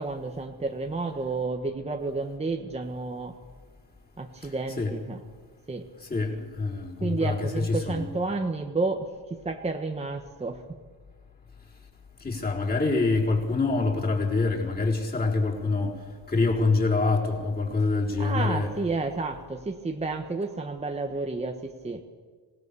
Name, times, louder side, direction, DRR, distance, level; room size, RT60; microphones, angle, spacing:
voice 1, 0.0-3.3 4.2-5.2 5.7-5.8 7.0-10.6 18.2-22.0, right 3 dB, 15° right, 1.3 m, -31 dB
voice 2, 6.0-8.1 12.2-16.0 16.3-18.7, left 3 dB, 20° left, 4.4 m, -25 dB
26.5 x 17.0 x 6.9 m
cardioid pair, 115°, 41 cm